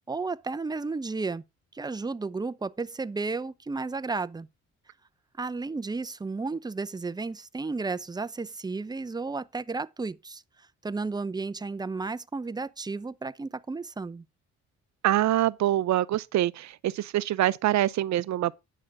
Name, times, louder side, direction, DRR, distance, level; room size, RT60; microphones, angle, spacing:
voice 1, 0.1-1.4 1.7-4.5 5.4-10.4 10.8-14.2, right 3 dB, 15° right, 0.6 m, -33 dB
voice 2, 15.0-18.5, right 13 dB, 65° right, 0.6 m, -25 dB
10.0 x 6.3 x 4.7 m
cardioid pair, 90°, 30 cm